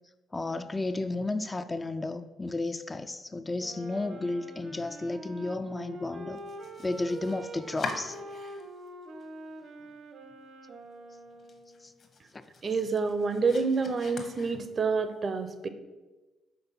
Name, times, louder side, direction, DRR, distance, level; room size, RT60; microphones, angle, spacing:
voice 1, 0.3-6.4 6.8-8.2 11.8-11.9, left 2 dB, 20° left, 9 dB, 0.3 m, -33 dB
Wind instrument woodwind instrument, 3.5-11.9, right 1 dB, 65° right, 0.9 m, -45 dB
Domestic sounds home sounds, 6.3-8.9 9.2-9.9 10.3-10.4 10.8-10.9 11.3-15.0, left 3 dB, 50° left, 1.0 m, -43 dB
voice 2, 12.6-15.7, right 4 dB, 40° right, 10 dB, 0.6 m, -28 dB
5.4 x 3.8 x 5.7 m, 1.2 s
cardioid pair, 90°, 0 cm